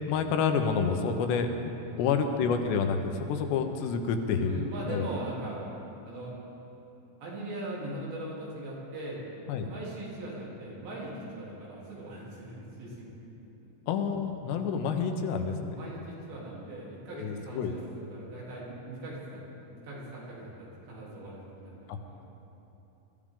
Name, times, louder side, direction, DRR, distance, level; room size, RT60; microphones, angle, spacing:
voice 1, 0.1-1.5 2.0-5.0 9.5-9.7 13.9-15.8 17.1-17.7 21.9-22.0, left 6 dB, 80° left, 5 dB, 3.1 m, -28 dB
voice 2, 1.8-2.2 4.4-6.3 7.2-13.3 15.4-19.4 19.7-22.2, right 1 dB, 90° right, -6 dB, 5.6 m, -40 dB
23.0 x 14.0 x 3.7 m, 3.0 s
omnidirectional pair, 4.9 m